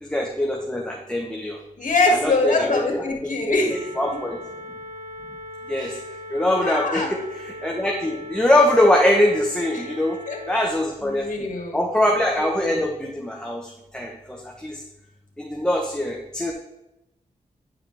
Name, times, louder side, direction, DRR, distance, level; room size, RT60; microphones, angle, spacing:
voice 1, 0.0-1.6 2.1-3.0 3.5-3.6 4.0-4.4 5.7-5.9 6.3-10.2 10.5-11.3 11.7-14.8 15.4-16.5, left 1 dB, 5° left, 0 dB, 1.0 m, -22 dB
voice 2, 1.8-3.9 5.7-6.0 6.6-7.1 9.7-9.9 10.3-10.4 11.0-11.8, left 2 dB, 70° left, 1 dB, 2.0 m, -23 dB
sound 1, 3.7-10.7, left 1 dB, 60° right, 1.0 m, -38 dB
10.0 x 4.8 x 3.4 m, 0.93 s
cardioid pair, 65°, 14 cm